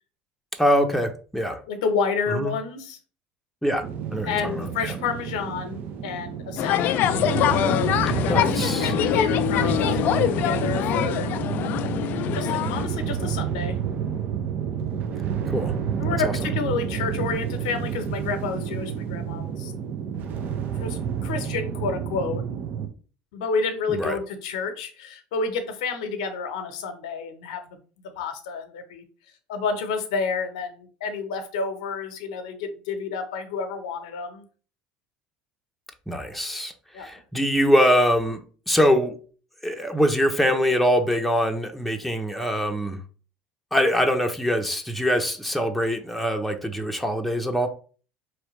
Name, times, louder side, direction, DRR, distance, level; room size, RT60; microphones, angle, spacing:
voice 1, 0.6-1.6 2.4-2.5 3.6-3.8 4.1-4.7 8.3-8.9 15.5-15.7 16.2-16.3 23.9-24.2 36.1-38.4 38.7-39.1 39.6-43.0 43.7-47.7, equal, ahead, 0.8 m, -23 dB
voice 2, 1.7-3.0 4.3-6.9 8.1-11.3 12.3-13.8 16.0-19.7 20.8-22.6 23.3-27.6 28.2-29.0 29.5-34.4 36.9-37.1, left 4 dB, 80° left, 0.8 m, -30 dB
sound 1, 3.8-22.9, right 8 dB, 55° right, 0.7 m, -29 dB
sound 2, 6.6-12.9, left 11 dB, 55° left, 0.4 m, -24 dB
4.4 x 3.1 x 3.1 m
hypercardioid pair, 80°, 4 cm